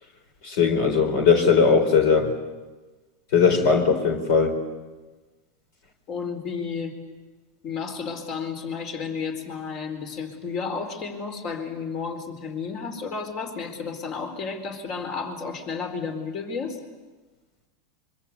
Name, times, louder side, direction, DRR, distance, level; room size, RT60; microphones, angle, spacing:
voice 1, 0.4-2.3 3.3-4.6, left 5 dB, 65° left, 5 dB, 4.1 m, -19 dB
voice 2, 6.1-7.0 7.6-16.8, left 5 dB, 50° left, 6 dB, 4.4 m, -32 dB
25.5 x 24.5 x 8.4 m, 1.3 s
hypercardioid pair, 100°, 0 cm